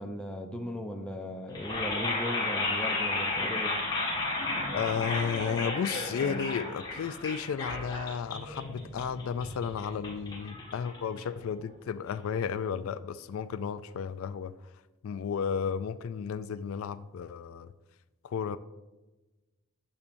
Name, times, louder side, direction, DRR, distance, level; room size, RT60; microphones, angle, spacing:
voice 1, 0.0-3.8, equal, 5° left, 3 dB, 0.5 m, -37 dB
sound 1, 1.5-11.6, left 2 dB, 20° left, 1.5 m, -33 dB
voice 2, 4.7-14.5 15.0-17.7 18.2-18.6, left 7 dB, 75° left, 14 dB, 0.3 m, -33 dB
9.6 x 6.8 x 2.6 m, 1.1 s
head